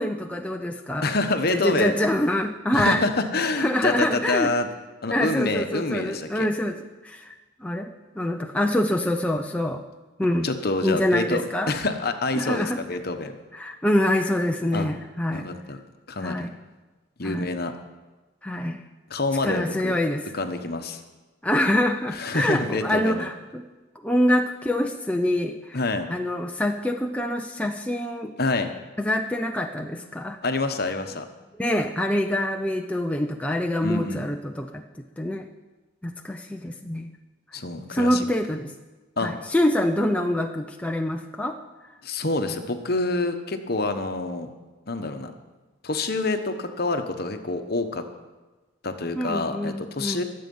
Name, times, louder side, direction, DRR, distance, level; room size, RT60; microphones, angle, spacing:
voice 1, 0.0-1.1 1.5-3.0 3.6-4.5 5.1-6.8 7.0-7.3 7.6-7.9 8.1-9.8 10.2-10.5 10.8-11.7 12.3-12.8 13.5-15.5 16.2-16.5 17.2-17.5 18.4-18.8 19.4-20.3 21.4-23.6 24.0-25.8 26.1-28.3 29.0-30.4 31.6-34.8 35.2-35.5 36.0-37.1 37.9-38.7 39.2-41.6 49.1-50.2, left 1 dB, 5° left, 3 dB, 0.5 m, -25 dB
voice 2, 1.0-2.0 2.7-4.7 5.0-6.5 10.4-13.3 14.7-14.9 15.3-15.8 16.1-16.5 17.2-17.7 19.1-20.0 20.3-21.0 22.1-23.3 25.7-26.1 28.4-28.7 30.4-31.3 33.8-34.2 37.5-38.3 39.2-39.3 42.0-44.5 44.9-45.3 45.8-48.0 48.8-50.2, left 2 dB, 50° left, 7 dB, 1.1 m, -27 dB
22.5 x 7.7 x 5.5 m, 1.2 s
head